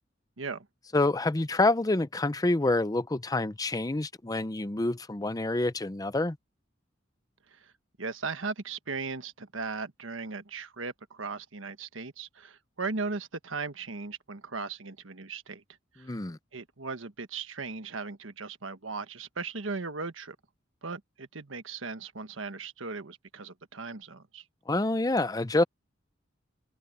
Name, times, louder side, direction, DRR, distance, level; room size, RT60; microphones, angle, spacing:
voice 1, 0.9-6.4 16.0-16.4 24.7-25.6, left 2 dB, 20° left, 0.6 m, -27 dB
voice 2, 8.0-15.6 16.0-16.1 16.5-20.3 20.8-24.4, right 4 dB, 85° right, 1.4 m, -37 dB
head